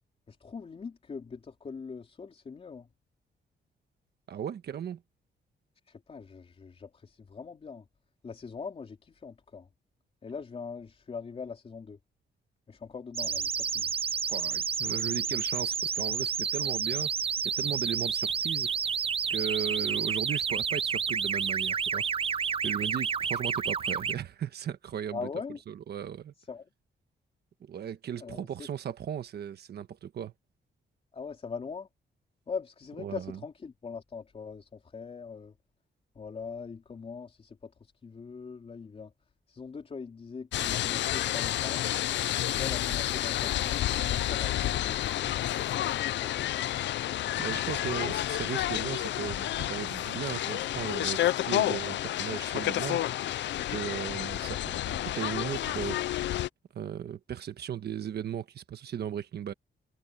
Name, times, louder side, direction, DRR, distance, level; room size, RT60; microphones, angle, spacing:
voice 1, 0.3-2.9 5.9-7.8 8.2-9.7 10.2-12.0 12.7-13.9 25.1-25.6 26.4-26.7 28.2-28.7 31.1-31.9 32.5-35.5 36.1-39.1 39.5-41.9 42.5-46.5, left 5 dB, 30° left, 4.1 m, -42 dB
voice 2, 4.3-5.0 14.3-17.1 17.4-18.7 19.3-22.0 22.3-25.3 25.7-26.3 27.6-30.3 33.0-33.4 47.4-53.0 53.7-56.0 56.7-59.5, right 9 dB, 60° right, 1.3 m, -36 dB
sound 1, 13.1-24.2, right 6 dB, 30° right, 0.5 m, -30 dB
sound 2, 40.5-56.5, left 13 dB, 70° left, 0.5 m, -30 dB
wide cardioid pair, 175°, 19 cm